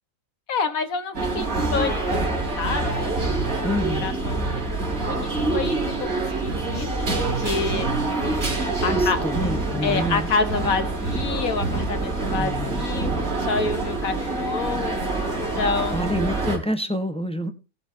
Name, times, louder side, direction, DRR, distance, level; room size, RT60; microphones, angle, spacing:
voice 1, 0.5-3.1 3.5-4.6 5.0-6.1 6.4-7.9 8.8-9.2 9.8-15.0 15.6-16.1, left 4 dB, 80° left, 8 dB, 1.8 m, -28 dB
sound 1, 1.1-16.6, right 2 dB, 90° right, 3.9 m, -26 dB
voice 2, 3.6-4.1 8.9-10.3 12.4-12.9 15.9-17.5, equal, 5° left, 7 dB, 1.1 m, -27 dB
17.5 x 8.1 x 2.8 m, 0.31 s
omnidirectional pair, 1.5 m